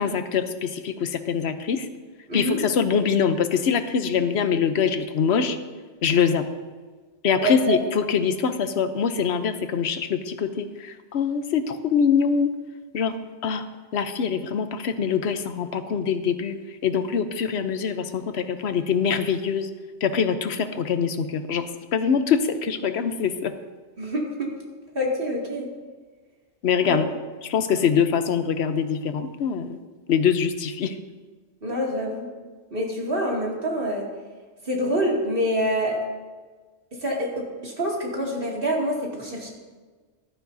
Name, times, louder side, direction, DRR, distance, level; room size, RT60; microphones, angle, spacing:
voice 1, 0.0-1.9 2.3-5.6 6.0-6.5 7.2-12.5 12.9-13.2 13.4-13.7 13.9-19.7 20.0-23.5 26.6-27.0 27.4-29.8 30.1-31.0, left 6 dB, 65° left, 9 dB, 1.0 m, -24 dB
voice 2, 2.3-2.6 7.4-7.8 24.0-24.5 24.9-25.7 26.9-27.0 27.7-27.8 31.6-32.3 32.7-34.1 34.6-36.0 37.0-39.5, equal, 50° right, -3 dB, 2.6 m, -26 dB
15.0 x 12.5 x 2.7 m, 1.4 s
omnidirectional pair, 1.2 m